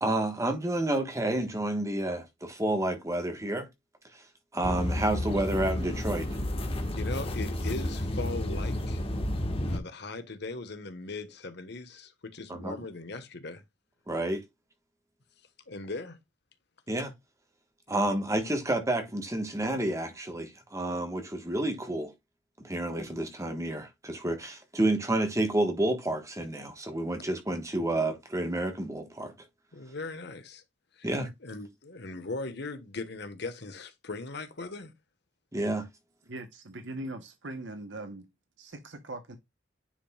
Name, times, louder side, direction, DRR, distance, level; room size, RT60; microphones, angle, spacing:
voice 1, 0.0-3.7 4.1-4.2 4.5-6.3 12.5-12.8 14.1-14.4 16.9-17.1 17.9-22.1 22.6-29.3 31.0-31.3 35.5-35.9, right 1 dB, 15° right, 1.4 m, -30 dB
sound 1, 4.6-9.8, left 1 dB, 30° left, 1.4 m, -31 dB
voice 2, 6.9-9.0 9.7-13.6 15.7-16.2 29.7-30.6 31.0-31.1 31.4-34.9, left 3 dB, 60° left, 1.4 m, -39 dB
voice 3, 36.3-38.3 38.6-39.4, right 2 dB, 70° right, 1.1 m, -40 dB
10.0 x 5.4 x 2.3 m
head